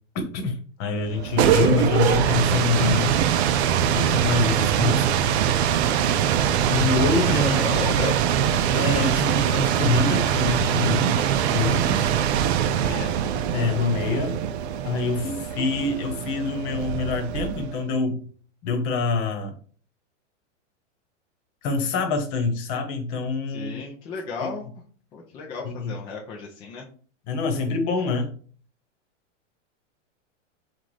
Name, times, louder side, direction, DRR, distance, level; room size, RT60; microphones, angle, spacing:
voice 1, 0.1-3.2 3.9-5.1 6.7-7.6 8.7-11.2 11.5-12.1 13.5-14.4 14.8-18.2 18.6-19.5 21.6-23.8 25.6-25.9 27.3-28.3, left 4 dB, 40° left, 1.1 m, -25 dB
sound 1, 1.1-17.8, right 9 dB, 60° right, 0.5 m, -23 dB
voice 2, 6.3-6.8 7.2-8.2 11.8-12.3 12.6-13.2 23.5-24.8 25.1-26.9, left 5 dB, 15° left, 0.3 m, -35 dB
5.8 x 2.4 x 3.2 m
hypercardioid pair, 140°, 37 cm